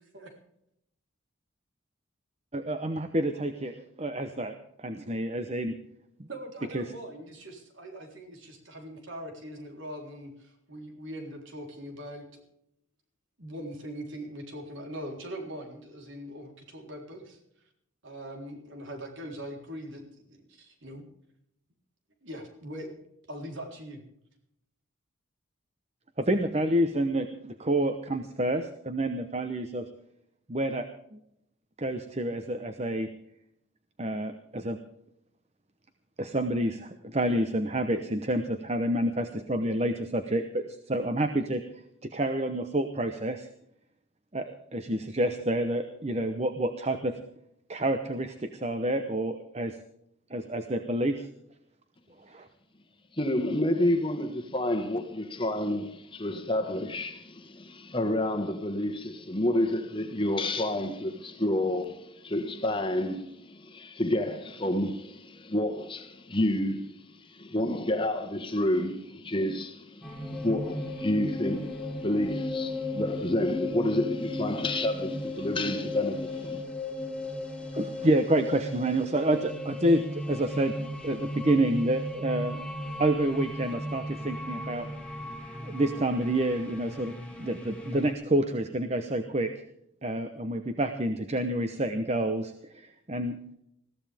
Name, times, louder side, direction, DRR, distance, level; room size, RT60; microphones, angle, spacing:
voice 1, 2.5-4.5 4.8-5.7 6.2-6.3 6.7-6.9 26.2-29.9 30.5-31.2 31.8-33.1 34.0-34.8 36.2-41.6 42.0-43.5 44.3-47.2 47.7-49.8 50.3-51.3 52.2-52.5 77.7-80.7 81.0-82.6 83.0-84.9 85.6-89.5 90.0-93.4, right 1 dB, 30° right, 0.9 m, -28 dB
voice 2, 6.3-12.4 13.4-17.4 18.0-21.1 22.2-23.0 23.3-24.0, equal, 65° right, 3.8 m, -41 dB
voice 3, 53.1-76.6, left 1 dB, 25° left, 1.5 m, -29 dB
sound 1, 70.0-88.1, left 1 dB, 5° left, 2.1 m, -36 dB
21.5 x 15.0 x 3.5 m
head